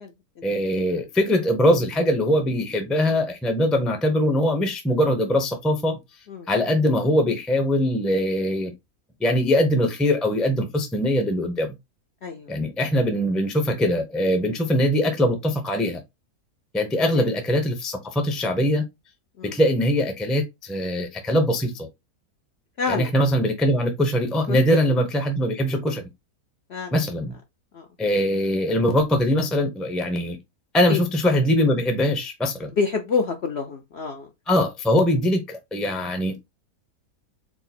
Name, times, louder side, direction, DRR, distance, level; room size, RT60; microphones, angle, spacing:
voice 1, 0.4-6.0 6.5-8.7 9.2-11.7 12.5-16.0 16.7-18.8 19.5-21.9 22.9-26.0 26.9-27.3 28.0-30.4 30.7-32.7 34.5-36.4, equal, ahead, 0.5 m, -22 dB
voice 2, 22.8-23.1 24.5-24.6 26.7-26.9 27.7-27.8 30.9-31.0 32.8-34.3, left 5 dB, 60° left, 0.7 m, -27 dB
4.7 x 2.0 x 4.1 m
omnidirectional pair, 1.6 m